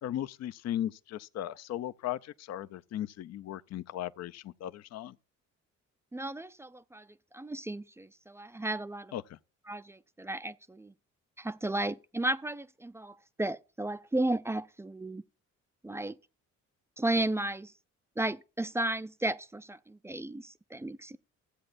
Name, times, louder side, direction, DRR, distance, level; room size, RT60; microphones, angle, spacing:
voice 1, 0.0-5.2 9.1-9.4, left 12 dB, 60° left, 0.5 m, -37 dB
voice 2, 6.1-7.1 7.3-9.1 9.7-10.9 11.4-15.2 15.8-16.2 17.0-17.7 18.2-21.2, right 1 dB, 10° right, 0.3 m, -34 dB
14.5 x 7.8 x 2.5 m
cardioid pair, 90°, 30 cm